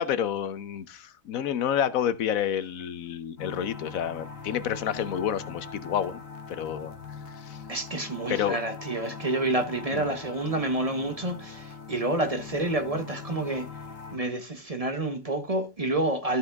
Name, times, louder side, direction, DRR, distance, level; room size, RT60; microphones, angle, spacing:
voice 1, 0.0-6.2 6.5-6.9 7.4-7.6 8.3-8.6 9.9-10.1, left 9 dB, 85° left, 1.2 m, -29 dB
sound 1, 3.4-14.2, left 5 dB, 70° left, 1.6 m, -42 dB
voice 2, 7.7-13.7 14.1-16.4, right 2 dB, 30° right, 1.0 m, -29 dB
14.0 x 4.9 x 3.5 m
omnidirectional pair, 1.4 m